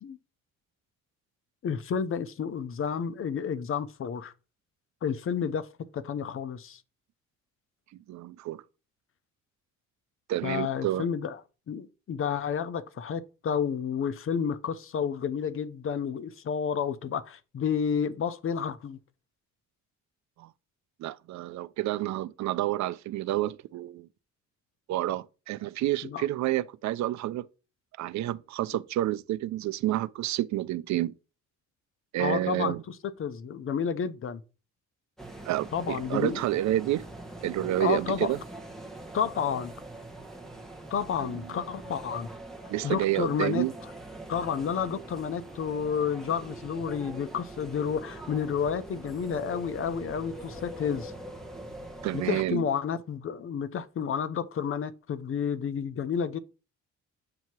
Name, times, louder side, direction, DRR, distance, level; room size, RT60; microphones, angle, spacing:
voice 1, 1.6-4.3 5.0-5.7 5.9-6.8 10.4-11.4 11.7-19.0 26.0-26.3 32.2-34.4 35.7-36.4 37.8-38.3 39.1-39.7 40.9-42.3 42.8-43.6 44.3-51.1 52.1-56.4, left 7 dB, 45° left, 0.7 m, -30 dB
voice 2, 8.1-8.6 10.3-11.1 20.4-20.5 21.0-24.1 24.9-27.5 28.0-31.1 32.1-32.8 35.4-37.1 37.4-38.4 41.2-41.6 42.7-43.7 52.0-52.7, right 14 dB, 65° right, 0.5 m, -29 dB
sound 1, 35.2-52.5, right 2 dB, ahead, 1.0 m, -43 dB
7.7 x 2.8 x 4.6 m
cardioid pair, 90°, 30 cm